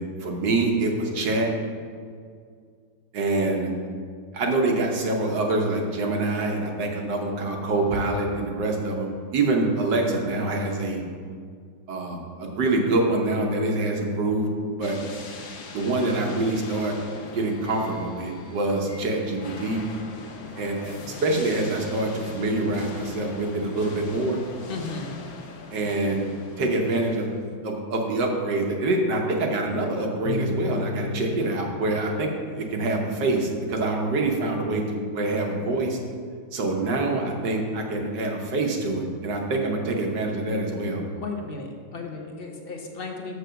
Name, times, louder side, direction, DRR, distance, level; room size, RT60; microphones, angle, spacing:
voice 1, 0.0-1.5 3.1-3.7 4.3-11.0 11.9-14.5 14.7-15.0 15.7-16.9 17.2-19.8 20.6-24.4 25.7-27.3 27.6-36.0 36.5-41.0, right 2 dB, 70° right, 1 dB, 1.7 m, -25 dB
sound 1, 14.8-27.5, left 4 dB, 60° left, 1.2 m, -42 dB
voice 2, 24.7-25.1 41.2-43.3, left 4 dB, 45° left, 2 dB, 0.8 m, -35 dB
sound 2, 30.3-32.9, left 4 dB, 75° left, 0.6 m, -34 dB
6.8 x 6.6 x 6.3 m, 2.1 s
omnidirectional pair, 2.0 m